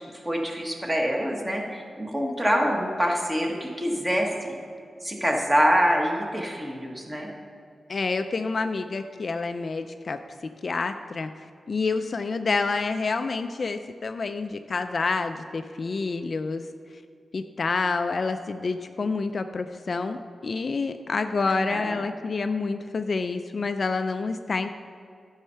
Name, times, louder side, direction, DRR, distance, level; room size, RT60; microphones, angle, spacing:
voice 1, 0.2-4.6 5.0-7.3 21.5-22.0, equal, 15° right, 0 dB, 1.2 m, -25 dB
voice 2, 7.9-10.2 10.6-16.6 17.3-24.7, left 4 dB, 40° left, 8 dB, 0.3 m, -28 dB
12.5 x 5.5 x 5.6 m, 2.4 s
wide cardioid pair, 170°, 0 cm